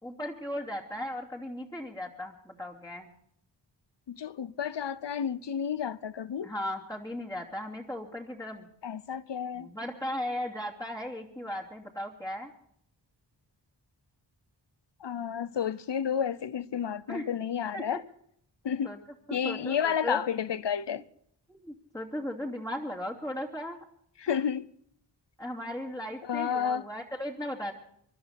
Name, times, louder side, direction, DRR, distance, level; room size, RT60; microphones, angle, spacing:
voice 1, 0.0-3.1 6.4-8.7 9.5-12.5 17.1-17.2 17.7-17.8 18.8-19.0 19.3-20.2 21.5-23.8 25.4-27.7, left 1 dB, 10° left, 2.7 m, -37 dB
voice 2, 4.1-6.5 8.8-9.7 15.0-18.0 18.6-18.9 19.3-21.0 24.2-24.7 26.3-26.9, left 8 dB, 65° left, 0.7 m, -31 dB
24.5 x 12.0 x 4.2 m
wide cardioid pair, 60°, 45 cm